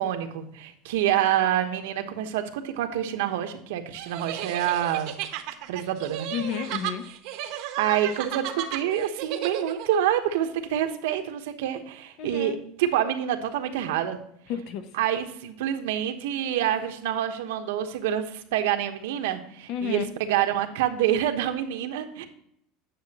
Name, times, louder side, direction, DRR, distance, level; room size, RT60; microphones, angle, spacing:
voice 1, 0.0-5.1 5.7-6.3 7.8-14.2 14.9-22.3, right 11 dB, 90° right, 6 dB, 1.1 m, -27 dB
sound 1, 4.0-10.0, right 11 dB, 55° right, 0.9 m, -34 dB
voice 2, 6.3-7.0 12.2-12.6 14.5-14.8 19.7-20.0, left 8 dB, 45° left, 11 dB, 0.8 m, -31 dB
9.6 x 6.9 x 2.9 m, 0.71 s
cardioid pair, 170°, 0 cm